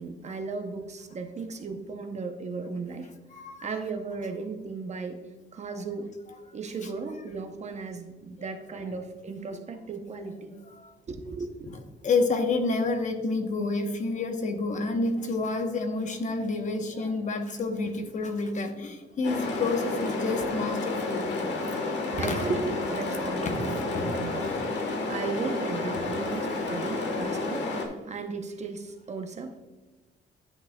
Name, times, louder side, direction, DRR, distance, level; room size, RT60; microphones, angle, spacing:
voice 1, 0.0-3.1 3.6-5.2 5.5-6.1 6.5-10.5 11.1-11.7 21.8-27.7 28.1-29.6, right 4 dB, 35° right, 6 dB, 0.7 m, -36 dB
voice 2, 3.3-3.7 10.8-10.9 12.0-21.4 22.2-22.5 23.4-24.0 24.4-24.6 26.7-26.9, left 3 dB, 40° left, 5 dB, 0.8 m, -29 dB
sound 1, 19.2-27.9, left 3 dB, 70° left, 1.3 m, -30 dB
10.0 x 6.0 x 2.2 m, 1.2 s
cardioid pair, 150°, 19 cm